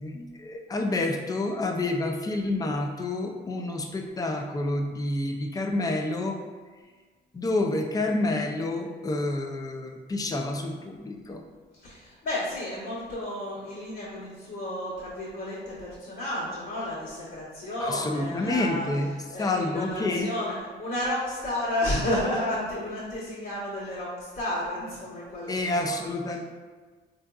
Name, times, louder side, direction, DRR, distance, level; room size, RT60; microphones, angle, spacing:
voice 1, 0.0-6.4 7.3-11.4 17.8-19.1 19.4-20.3 25.5-26.4, left 2 dB, 20° left, 3 dB, 0.4 m, -28 dB
voice 2, 11.8-18.9 19.3-26.4, left 1 dB, 65° left, -11 dB, 1.2 m, -32 dB
3.5 x 2.6 x 2.3 m, 1.4 s
cardioid pair, 90°, 20 cm